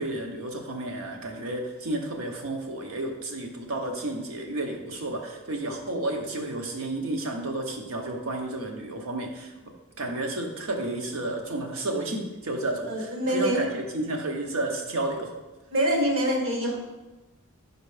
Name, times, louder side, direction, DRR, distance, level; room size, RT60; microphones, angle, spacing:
voice 1, 0.0-9.5 10.0-15.3, right 2 dB, 85° right, 2 dB, 0.9 m, -31 dB
voice 2, 12.9-13.7 15.7-16.8, right 1 dB, 70° right, 0 dB, 1.3 m, -25 dB
5.4 x 4.0 x 4.9 m, 1.1 s
head